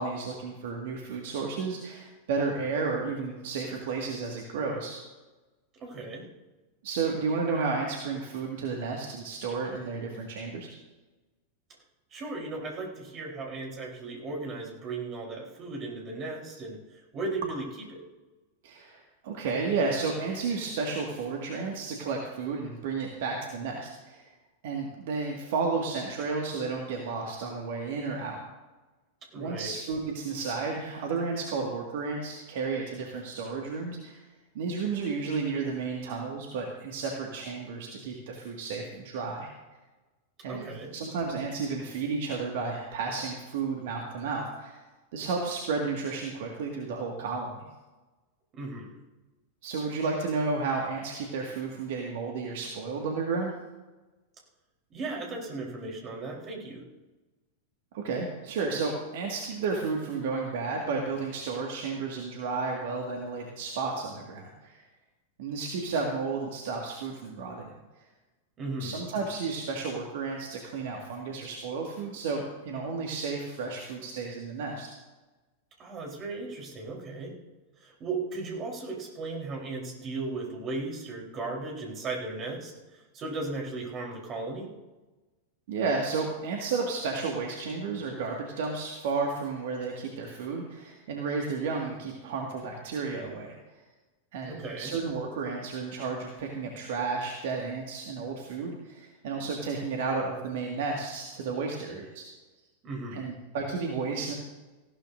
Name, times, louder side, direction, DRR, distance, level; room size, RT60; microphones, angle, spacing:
voice 1, 0.0-5.0 6.8-10.7 18.6-24.2 24.6-28.4 29.4-34.2 34.6-39.5 40.4-44.8 45.1-47.7 49.6-53.5 57.9-64.8 65.4-67.7 68.0-68.1 68.8-74.9 85.7-93.5 94.3-102.2 103.1-104.3, right 4 dB, 55° right, 0 dB, 1.9 m, -32 dB
voice 2, 5.8-6.3 12.1-17.6 17.9-18.0 29.3-29.7 40.4-40.9 48.5-49.0 54.9-56.8 68.6-69.0 75.8-77.3 77.8-84.7 94.5-94.9 102.8-103.3, right 3 dB, 30° right, 0 dB, 3.9 m, -36 dB
19.0 x 15.5 x 2.6 m, 1.1 s
figure-of-eight pair, 90°, 0 cm